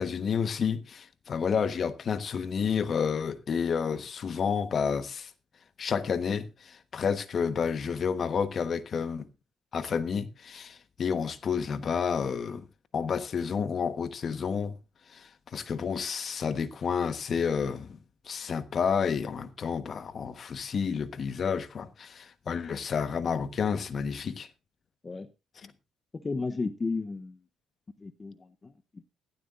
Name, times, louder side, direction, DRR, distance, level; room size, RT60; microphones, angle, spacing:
voice 1, 0.0-5.3 5.8-9.3 9.7-12.6 12.9-14.8 15.1-18.0 18.2-24.5 25.6-25.7, left 6 dB, 50° left, 1.2 m, -30 dB
voice 2, 26.1-27.4 28.0-29.0, left 3 dB, 30° left, 0.8 m, -34 dB
17.0 x 12.0 x 2.5 m
cardioid pair, 90°, 0 cm